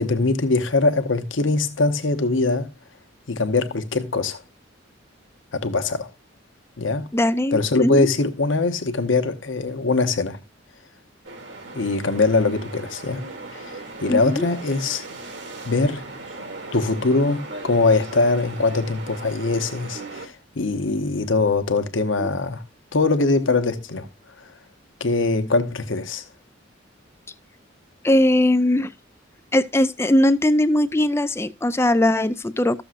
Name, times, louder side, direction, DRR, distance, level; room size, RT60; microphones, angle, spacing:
voice 1, 0.0-2.7 3.3-4.4 5.5-6.1 6.8-7.1 7.5-10.4 11.7-13.2 13.5-15.1 15.7-16.0 16.7-22.6 22.9-24.1 25.0-26.2, left 3 dB, 80° left, 1.0 m, -22 dB
voice 2, 7.1-8.1 14.1-14.5 22.2-22.3 28.0-28.9 29.5-32.8, left 1 dB, 15° left, 0.4 m, -20 dB
sound 1, 11.2-20.3, right 2 dB, 70° right, 1.6 m, -38 dB
14.0 x 6.9 x 2.5 m
head